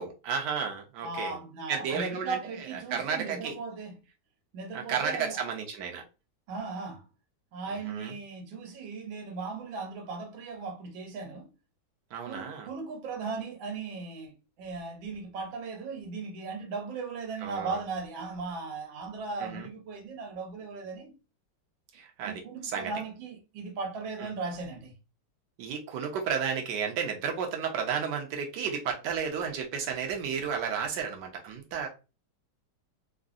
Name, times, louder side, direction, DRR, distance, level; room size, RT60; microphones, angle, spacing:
voice 1, 0.0-1.4 1.7-2.4 2.9-3.6 4.7-6.0 7.7-8.1 12.1-12.7 17.4-17.8 19.4-19.7 21.9-22.9 24.2-24.3 25.6-31.9, right 6 dB, 70° right, 1.3 m, -32 dB
voice 2, 1.0-3.9 4.5-5.4 6.5-7.0 7.5-11.5 12.2-21.1 22.2-24.9, right 4 dB, 90° right, 1.5 m, -37 dB
3.6 x 2.0 x 2.4 m
omnidirectional pair, 2.1 m